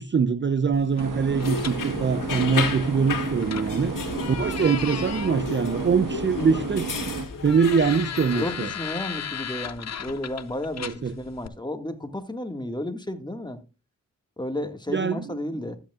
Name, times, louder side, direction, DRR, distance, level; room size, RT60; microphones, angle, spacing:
voice 1, 0.0-3.9 4.3-6.9 7.4-8.7 10.8-11.1 14.9-15.4, right 6 dB, 35° right, 0.6 m, -23 dB
sound 1, 0.7-11.5, left 8 dB, 50° left, 0.7 m, -37 dB
sound 2, 1.0-7.3, right 5 dB, 70° right, 1.5 m, -32 dB
sound 3, 1.4-8.5, left 5 dB, 70° left, 2.1 m, -33 dB
voice 2, 8.4-13.6 14.4-15.8, left 1 dB, 15° left, 1.8 m, -32 dB
12.5 x 9.1 x 2.4 m
cardioid pair, 45°, 33 cm